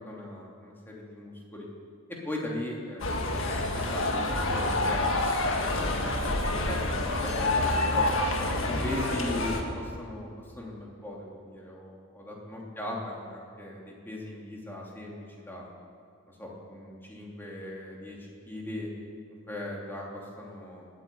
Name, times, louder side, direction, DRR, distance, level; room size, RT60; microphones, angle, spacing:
voice 1, 0.1-1.7 2.2-3.3 3.7-6.0 6.6-8.1 8.7-10.3 10.6-15.1 15.5-15.7 16.3-18.2 18.5-18.9 19.5-20.8, left 1 dB, 10° left, -3 dB, 2.9 m, -38 dB
sound 1, 3.0-9.6, left 2 dB, 60° left, 1.7 m, -27 dB
19.0 x 9.2 x 8.4 m, 2.2 s
head